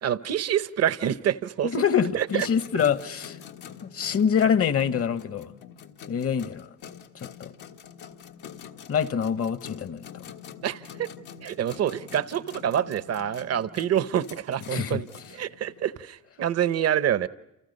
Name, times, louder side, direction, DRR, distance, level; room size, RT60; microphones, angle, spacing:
voice 1, 0.0-1.7 2.1-2.5 10.6-11.1 11.4-17.3, right 10 dB, 55° right, 0.8 m, -27 dB
voice 2, 1.6-3.4 3.8-5.5 6.1-6.7 7.1-7.5 8.9-10.3 14.7-15.0, left 7 dB, 50° left, 1.0 m, -25 dB
sound 1, 2.3-16.1, left 8 dB, 85° left, 1.6 m, -46 dB
29.0 x 28.0 x 5.3 m
cardioid pair, 90°, 30 cm